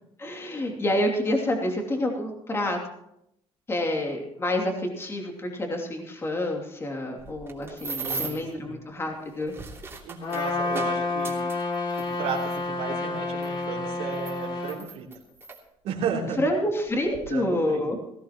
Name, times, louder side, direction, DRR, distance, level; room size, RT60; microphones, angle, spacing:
voice 1, 0.2-2.8 3.7-9.5 16.4-18.0, left 1 dB, 25° left, 1 dB, 2.8 m, -28 dB
sound 1, 7.2-8.5 9.3-12.6 13.4-13.5 14.1-15.6 16.4-16.5 16.9-17.2, right 4 dB, 20° right, 3.0 m, -38 dB
voice 2, 8.0-8.8 10.0-11.4 12.0-15.1 15.8-16.4 17.3-18.0, right 6 dB, 85° right, -4 dB, 3.4 m, -34 dB
Trumpet, 10.2-14.8, left 3 dB, 45° left, 3.3 m, -29 dB
19.5 x 15.5 x 3.1 m, 0.77 s
cardioid pair, 130°, 11 cm